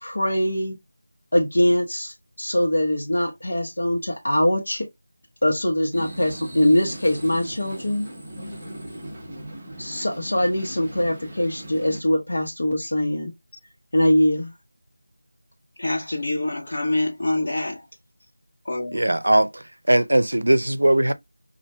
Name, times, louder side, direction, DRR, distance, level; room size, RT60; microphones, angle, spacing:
voice 1, 0.0-0.8 1.3-4.8 5.4-8.1 9.8-13.3 13.9-14.5, left 1 dB, 65° left, 1.0 m, -22 dB
sound 1, 5.9-12.0, right 1 dB, 10° right, 1.0 m, -38 dB
voice 2, 15.8-17.8 18.6-19.0, left 2 dB, 45° left, 1.3 m, -26 dB
voice 3, 18.9-21.1, right 1 dB, 85° right, 0.5 m, -19 dB
5.4 x 2.5 x 2.2 m
figure-of-eight pair, 175°, 0 cm